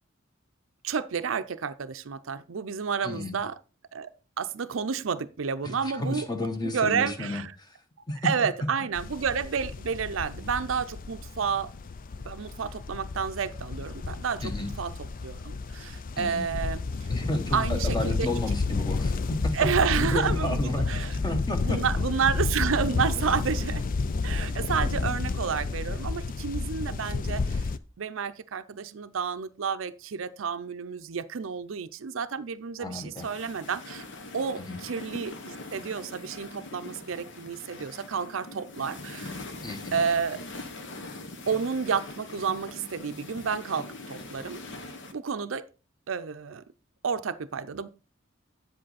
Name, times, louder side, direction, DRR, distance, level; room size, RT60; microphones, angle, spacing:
voice 1, 0.8-3.6 3.9-4.1 4.4-6.3 6.7-7.5 8.2-11.7 12.3-17.1 17.5-18.4 19.5-21.2 21.6-23.8 24.2-27.7 28.0-34.0 34.3-39.4 39.9-40.4 41.5-44.6 45.1-45.7 46.1-46.6 47.0-47.9, right 6 dB, 75° right, 0.5 m, -30 dB
voice 2, 3.0-3.4 5.6-7.7 8.1-8.3 14.4-14.7 16.2-16.5 17.1-19.7 20.0-21.8 24.9-25.0 32.8-33.3 34.6-34.8 39.6-40.0, left 1 dB, 20° left, 1.2 m, -32 dB
sound 1, 9.0-27.8, left 3 dB, 45° left, 0.4 m, -31 dB
sound 2, 33.2-45.1, left 2 dB, 65° left, 1.2 m, -42 dB
8.3 x 7.7 x 4.1 m
head